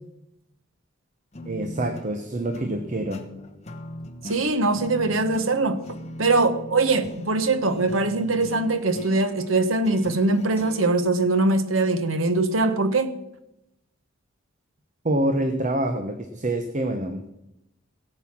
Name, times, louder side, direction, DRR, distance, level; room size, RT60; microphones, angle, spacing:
sound 1, 1.3-10.9, left 1 dB, 35° left, 1.1 m, -39 dB
voice 1, 1.4-3.2 15.0-17.3, right 1 dB, 40° right, 7 dB, 1.0 m, -26 dB
voice 2, 4.2-5.8 6.2-13.1, right 2 dB, 85° right, 11 dB, 1.2 m, -22 dB
17.0 x 8.0 x 6.0 m, 0.87 s
head